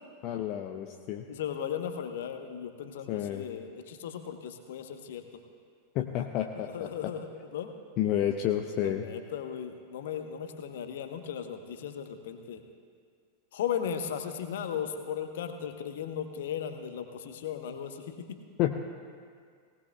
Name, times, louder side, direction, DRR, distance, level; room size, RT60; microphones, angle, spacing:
voice 1, 0.2-1.2 3.1-3.5 5.9-6.9 8.0-9.1 18.6-18.8, left 11 dB, 40° left, 4 dB, 0.6 m, -30 dB
voice 2, 1.3-5.2 6.6-7.7 8.8-12.6 13.5-18.2, left 8 dB, 55° left, 7 dB, 1.1 m, -36 dB
19.0 x 18.5 x 2.4 m, 2.1 s
figure-of-eight pair, 90°, 0 cm